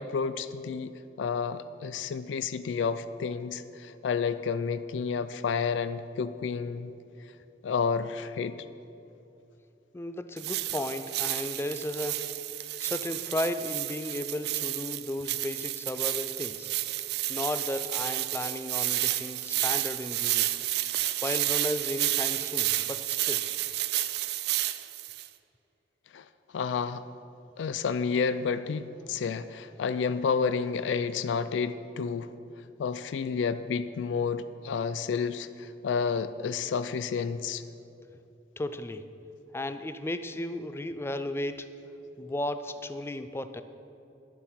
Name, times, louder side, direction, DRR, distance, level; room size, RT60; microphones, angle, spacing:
voice 1, 0.0-6.9 7.6-8.5 26.1-26.3 26.5-27.0 27.6-32.3 32.8-37.6, left 5 dB, 90° left, 13 dB, 0.4 m, -30 dB
voice 2, 9.9-12.3 12.8-16.7 17.3-20.5 21.2-23.4 29.0-29.2 38.6-39.0 39.5-41.7 42.2-43.6, left 1 dB, 15° left, 11 dB, 0.3 m, -34 dB
sound 1, 10.4-25.3, right 15 dB, 60° right, 0.4 m, -31 dB
11.5 x 7.1 x 5.6 m, 2.8 s
head